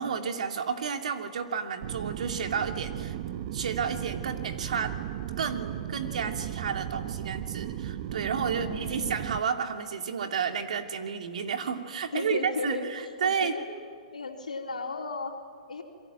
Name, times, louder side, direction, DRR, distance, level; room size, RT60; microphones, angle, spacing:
voice 1, 0.0-3.2 3.5-5.0 5.4-13.5, right 6 dB, 65° right, 6 dB, 2.7 m, -31 dB
sound 1, 1.8-9.4, right 11 dB, 50° right, 1.1 m, -36 dB
voice 2, 8.5-9.3 12.1-12.8 13.2-13.6 14.1-15.8, left 4 dB, 85° left, 2 dB, 3.8 m, -35 dB
27.5 x 23.0 x 9.0 m, 2.2 s
hypercardioid pair, 120°, 4 cm